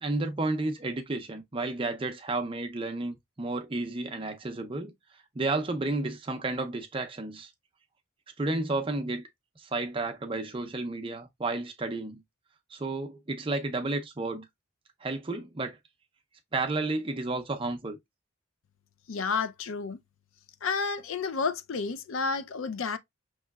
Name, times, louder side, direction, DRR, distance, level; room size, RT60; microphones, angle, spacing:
voice 1, 0.0-4.9 5.3-7.5 8.4-9.3 9.6-12.2 12.7-14.5 15.0-15.8 16.5-18.0, right 2 dB, 25° right, 0.5 m, -32 dB
voice 2, 19.1-20.0 20.6-23.0, left 5 dB, 70° left, 0.5 m, -31 dB
5.5 x 3.0 x 2.2 m
head